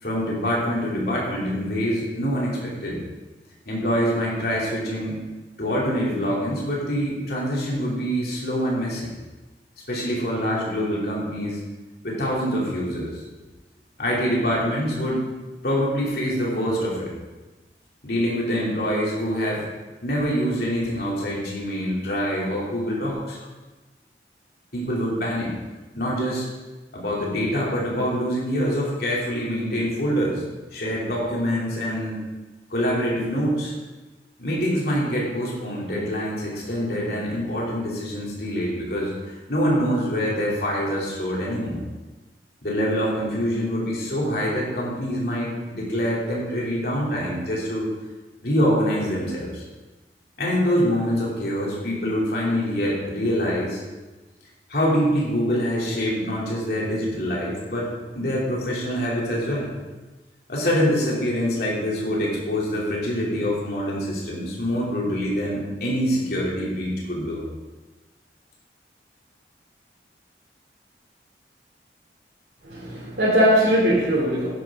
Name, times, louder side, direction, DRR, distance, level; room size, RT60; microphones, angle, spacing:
voice 1, 0.0-3.0 3.7-5.2 5.6-9.1 9.9-11.6 12.0-13.2 14.0-15.2 15.6-17.1 18.0-19.7 20.0-23.4 24.7-25.5 25.9-26.5 26.9-30.4 30.7-32.2 32.7-33.7 34.4-41.8 42.6-47.9 48.4-49.6 50.4-53.8 54.7-59.7 60.5-67.4, equal, 60° left, -4 dB, 3.1 m, -25 dB
voice 2, 72.6-74.5, equal, 80° right, -8 dB, 3.0 m, -20 dB
11.0 x 10.5 x 3.8 m, 1.2 s
head